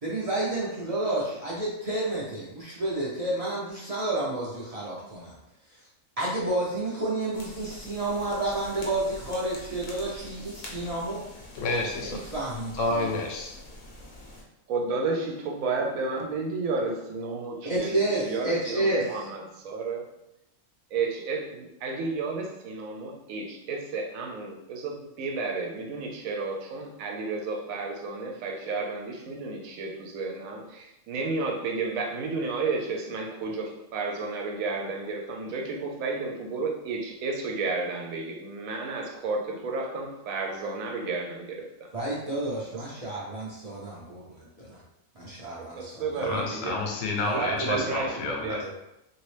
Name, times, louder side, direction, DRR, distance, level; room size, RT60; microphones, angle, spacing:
voice 1, 0.0-5.4 5.7-5.8 6.2-11.2 12.0-13.2 17.6-19.3 41.9-44.8 45.1-46.5 47.2-47.4 47.7-47.9 48.6-48.7, right 2 dB, 40° right, -7 dB, 0.5 m, -30 dB
sound 1, 7.3-14.4, left 1 dB, 45° left, 0.7 m, -45 dB
voice 2, 11.6-12.2 12.7-13.6 44.6-44.7 46.2-48.6, left 2 dB, 75° left, 1 dB, 1.0 m, -29 dB
voice 3, 14.7-20.1 20.9-41.9 45.6-46.8 47.4-48.6, right 3 dB, 80° right, 2 dB, 1.0 m, -32 dB
3.0 x 2.7 x 3.2 m, 0.87 s
omnidirectional pair, 1.4 m